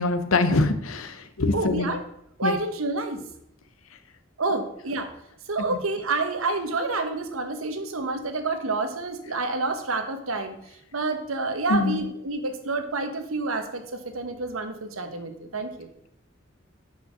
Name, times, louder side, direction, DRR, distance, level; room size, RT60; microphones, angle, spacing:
voice 1, 0.0-1.9 2.4-2.6 11.7-12.0, left 2 dB, 85° left, 11 dB, 0.8 m, -24 dB
voice 2, 1.5-2.0 2.4-3.2 4.4-5.1 5.5-10.6 10.9-15.9, right 3 dB, 85° right, 7 dB, 1.2 m, -28 dB
6.2 x 5.7 x 6.3 m, 0.75 s
head